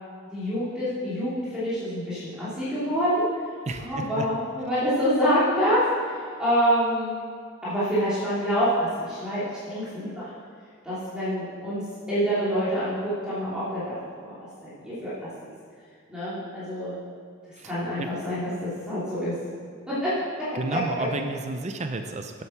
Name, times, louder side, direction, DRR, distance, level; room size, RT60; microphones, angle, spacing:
voice 1, 0.3-3.3 3.8-7.2 7.6-10.3 10.8-15.5 16.1-17.0 17.6-19.3 19.9-20.1, equal, 5° right, -13 dB, 3.0 m, -27 dB
voice 2, 3.7-4.3 17.6-17.7 18.0-18.1 20.5-22.4, right 2 dB, 35° right, 6 dB, 0.5 m, -31 dB
9.2 x 7.8 x 5.8 m, 2.2 s
head